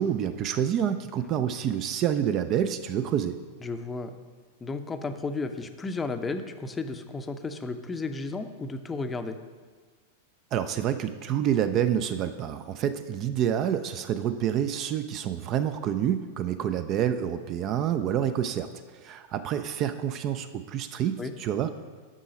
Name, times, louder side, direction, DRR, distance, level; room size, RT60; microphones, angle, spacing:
voice 1, 0.0-3.4 10.5-18.7 19.0-21.7, right 9 dB, 35° right, 10 dB, 0.4 m, -28 dB
voice 2, 3.6-4.2 4.6-9.4 21.2-21.3, left 3 dB, 15° left, 8 dB, 0.6 m, -33 dB
7.5 x 6.2 x 5.1 m, 1.5 s
figure-of-eight pair, 95°, 0 cm